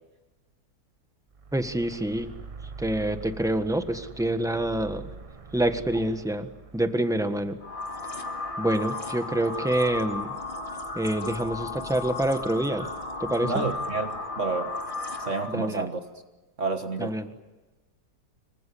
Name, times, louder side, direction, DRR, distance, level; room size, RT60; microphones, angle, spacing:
sound 1, 1.3-9.6, right 4 dB, 30° right, 0.7 m, -45 dB
voice 1, 1.5-2.3 2.8-5.1 5.5-6.5 6.7-7.6 8.6-10.3 10.9-12.9 13.2-13.6 15.5-15.9 17.0-17.3, right 1 dB, ahead, 8 dB, 1.3 m, -27 dB
sound 2, 7.6-15.7, left 3 dB, 30° left, 2.3 m, -34 dB
voice 2, 13.4-14.8 15.2-16.0 16.6-17.2, right 4 dB, 45° right, 6 dB, 1.8 m, -30 dB
26.0 x 24.0 x 8.5 m, 1.2 s
omnidirectional pair, 1.8 m